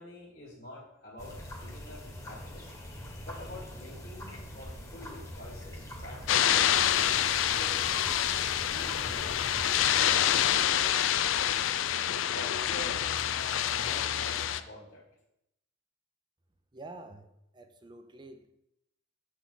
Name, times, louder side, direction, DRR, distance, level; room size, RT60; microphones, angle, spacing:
voice 1, 0.0-2.7 3.2-6.7 7.0-8.0 8.7-11.3 12.3-15.0, left 1 dB, 50° left, -7 dB, 1.7 m, -47 dB
sound 1, 1.2-10.6, equal, 15° left, 1.3 m, -43 dB
sound 2, 6.3-14.6, left 11 dB, 80° left, 0.4 m, -27 dB
voice 2, 16.7-17.3 17.5-18.5, right 2 dB, 25° right, 8 dB, 0.6 m, -47 dB
7.1 x 6.2 x 3.8 m, 0.81 s
head